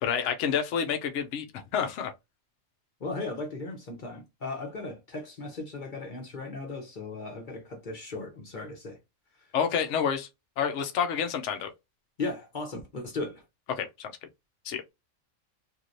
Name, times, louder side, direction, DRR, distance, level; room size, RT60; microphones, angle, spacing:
voice 1, 0.0-2.1 9.5-10.3 10.6-11.7 13.7-14.1 14.7-14.8, left 7 dB, 70° left, 0.9 m, -29 dB
voice 2, 3.0-9.0 12.2-13.4, left 3 dB, 45° left, 0.8 m, -36 dB
3.1 x 2.7 x 2.5 m
omnidirectional pair, 1.4 m